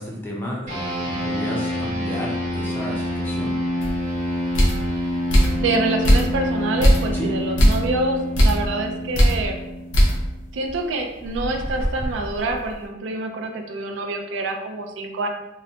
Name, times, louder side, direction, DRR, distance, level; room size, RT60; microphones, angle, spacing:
voice 1, 0.0-3.5 7.1-7.3, equal, 10° left, -4 dB, 0.4 m, -32 dB
sound 1, 0.7-10.4, equal, 40° right, 1.0 m, -27 dB
sound 2, 3.8-4.0 4.5-4.9 5.3-5.6 6.0-6.5 6.8-7.1 7.6-7.9 8.3-8.7 9.1-9.4 9.9-10.3 10.7-10.8 11.2-12.7, equal, 85° left, 0.7 m, -18 dB
voice 2, 5.6-9.5 10.5-15.3, right 2 dB, 70° right, 3 dB, 0.3 m, -26 dB
2.8 x 2.0 x 2.6 m, 0.93 s
head